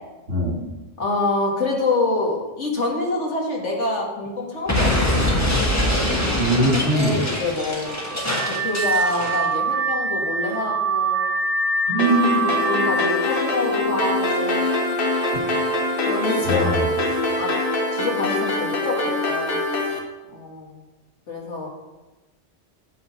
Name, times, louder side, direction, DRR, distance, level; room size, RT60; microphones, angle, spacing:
voice 1, 0.3-0.6 6.4-7.2 11.9-12.5 16.4-16.8, right 1 dB, 80° right, -2 dB, 2.4 m, -21 dB
voice 2, 1.0-5.6 6.9-8.0 8.5-11.3 12.4-14.7 16.1-16.7 17.4-17.5 17.9-19.5 20.3-20.8 21.3-21.7, left 2 dB, 75° left, -1 dB, 1.9 m, -26 dB
Explosion, 4.7-9.5, left 1 dB, 15° left, 1.3 m, -23 dB
Car / Alarm, 7.9-13.3, right 3 dB, 60° right, 0.9 m, -24 dB
sound 1, 12.0-20.0, left 2 dB, 50° left, 1.3 m, -24 dB
9.0 x 4.0 x 5.8 m, 1.1 s
omnidirectional pair, 1.2 m